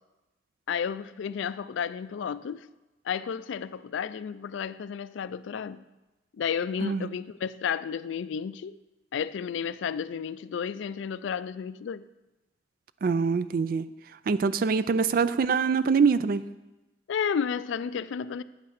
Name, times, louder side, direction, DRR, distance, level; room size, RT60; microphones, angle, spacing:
voice 1, 0.7-2.7 3.1-5.8 6.4-8.8 9.1-12.1 17.1-18.4, left 7 dB, 75° left, 16 dB, 0.3 m, -32 dB
voice 2, 13.0-13.9 14.3-16.4, right 5 dB, 45° right, 15 dB, 0.3 m, -24 dB
9.1 x 5.7 x 6.4 m, 1.1 s
head